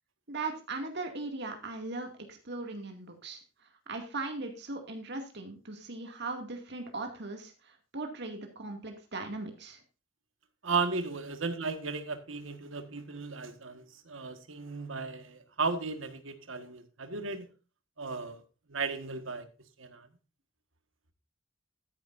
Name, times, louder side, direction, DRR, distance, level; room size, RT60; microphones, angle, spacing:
voice 1, 0.3-9.8, right 3 dB, 60° right, 2.2 m, -39 dB
voice 2, 10.6-17.5 18.0-18.4 18.7-19.5 19.8-20.1, right 4 dB, 90° right, 1.6 m, -35 dB
13.0 x 10.0 x 2.6 m
head